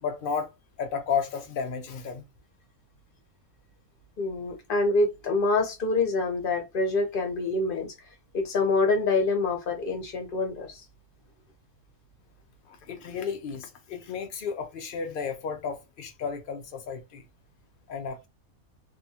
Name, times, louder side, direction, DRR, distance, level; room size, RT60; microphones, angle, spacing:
voice 1, 0.0-0.5 0.8-2.2 12.7-17.2 17.9-18.3, left 6 dB, 80° left, 0.4 m, -33 dB
voice 2, 4.2-7.9 8.3-10.8, left 3 dB, 45° left, 0.8 m, -26 dB
2.7 x 2.2 x 2.7 m
omnidirectional pair, 1.6 m